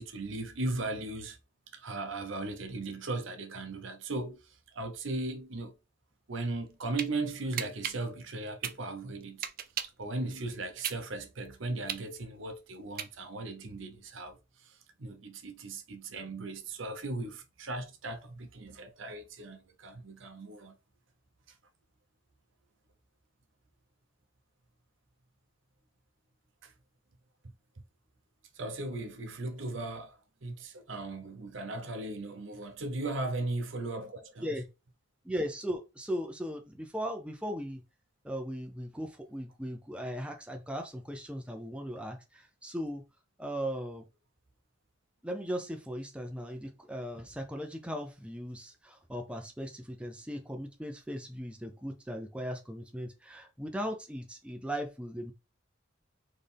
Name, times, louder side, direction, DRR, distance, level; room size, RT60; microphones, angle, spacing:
voice 1, 0.0-1.4 1.7-5.7 6.3-9.5 9.8-20.7 26.6-26.7 28.5-34.5, right 2 dB, 75° right, 0.9 m, -37 dB
sound 1, 6.5-7.1 7.6-10.0 10.5-13.5, right 9 dB, 45° right, 0.6 m, -37 dB
voice 2, 35.2-37.8 38.2-43.0 43.4-44.1 45.2-55.3, equal, 5° right, 0.6 m, -38 dB
4.4 x 3.3 x 3.5 m
head